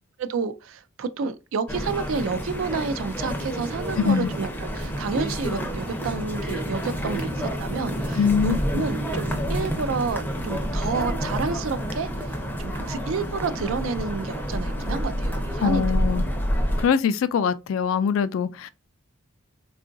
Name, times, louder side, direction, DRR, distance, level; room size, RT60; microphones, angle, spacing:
voice 1, 0.2-12.3 12.6-15.9, right 5 dB, 65° right, 0.4 m, -30 dB
sound 1, 1.7-16.9, equal, 10° left, 0.5 m, -28 dB
voice 2, 4.0-4.3 8.2-8.8 15.6-16.3 16.8-18.7, left 6 dB, 70° left, 0.3 m, -23 dB
3.6 x 2.4 x 2.5 m
head